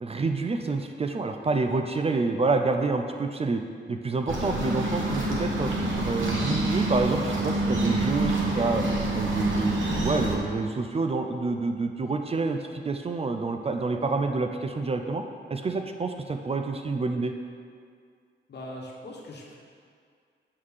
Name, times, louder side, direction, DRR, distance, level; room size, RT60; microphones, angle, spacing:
voice 1, 0.0-3.6 3.9-5.7 6.0-8.8 9.2-15.2 15.5-17.3, right 3 dB, 30° right, 5 dB, 0.4 m, -28 dB
sound 1, 4.3-10.4, right 2 dB, 90° right, 1.1 m, -27 dB
voice 2, 18.5-19.5, left 1 dB, 60° left, -2 dB, 1.2 m, -40 dB
6.5 x 3.7 x 6.3 m, 2.1 s
wide cardioid pair, 125°, 19 cm